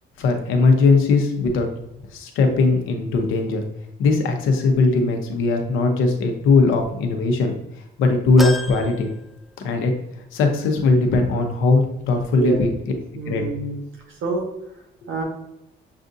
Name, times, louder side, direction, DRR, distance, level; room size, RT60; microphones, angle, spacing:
voice 1, 0.2-1.7 2.1-3.6 4.0-7.5 8.0-9.1 9.6-9.9 10.3-12.7 13.3-13.4, left 3 dB, 90° left, 4 dB, 0.8 m, -19 dB
sound 1, 8.4-10.0 10.4-10.5 11.8-11.9, left 2 dB, ahead, 0.4 m, -33 dB
voice 2, 13.1-14.5 15.1-15.2, right 3 dB, 85° right, 0 dB, 1.3 m, -28 dB
7.3 x 2.5 x 2.6 m, 0.85 s
cardioid pair, 90°, 20 cm